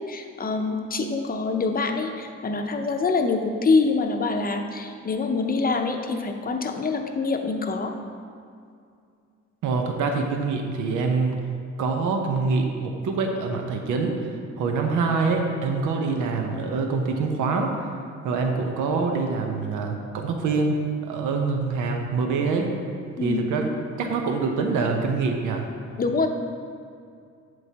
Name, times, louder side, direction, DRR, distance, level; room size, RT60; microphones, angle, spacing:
voice 1, 0.1-7.9 23.2-23.5 26.0-26.3, left 4 dB, 30° left, 5 dB, 0.7 m, -25 dB
voice 2, 9.6-11.4 11.8-14.3 14.6-17.7 18.2-22.7 23.2-25.7, right 4 dB, 85° right, 3 dB, 0.9 m, -25 dB
7.7 x 7.5 x 2.9 m, 2.3 s
cardioid pair, 90°, 30 cm